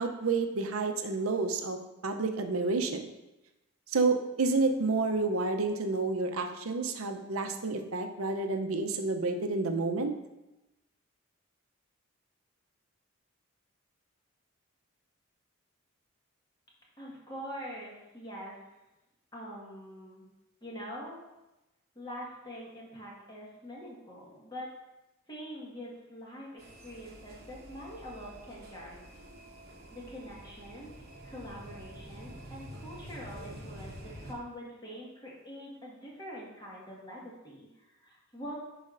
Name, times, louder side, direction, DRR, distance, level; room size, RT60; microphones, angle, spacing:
voice 1, 0.0-1.8 2.0-3.0 3.9-10.1, right 3 dB, 85° right, 6 dB, 0.7 m, -29 dB
voice 2, 17.0-18.6 19.3-20.3 20.6-21.2 21.9-24.7 25.3-29.3 29.9-30.9 31.2-38.6, equal, 20° left, -4 dB, 1.6 m, -44 dB
sound 1, 26.6-34.3, right 1 dB, 50° right, 1.0 m, -48 dB
10.5 x 5.0 x 2.6 m, 0.99 s
head